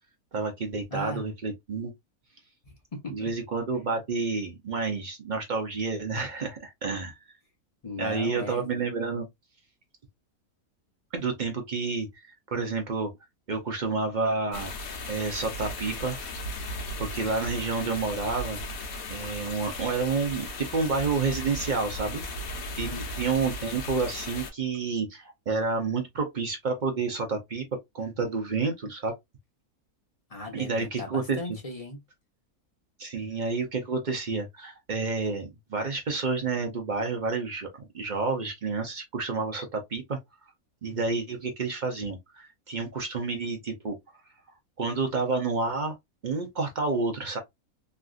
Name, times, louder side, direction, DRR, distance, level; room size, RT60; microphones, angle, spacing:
voice 1, 0.3-1.9 3.1-7.3 8.0-9.3 11.1-13.1 13.5-14.7 15.1-16.2 17.0-18.6 19.1-22.2 22.8-22.9 23.2-27.7 27.9-29.1 30.5-31.6 33.0-40.2 40.8-44.0 44.8-46.0 46.2-47.4, right 4 dB, 55° right, 0.5 m, -29 dB
voice 2, 0.9-1.2 2.6-3.3 7.8-8.6 22.8-23.1 30.3-32.0, left 2 dB, 30° left, 0.8 m, -37 dB
sound 1, 14.5-24.5, left 1 dB, 75° left, 1.3 m, -36 dB
3.2 x 2.5 x 2.3 m
omnidirectional pair, 1.5 m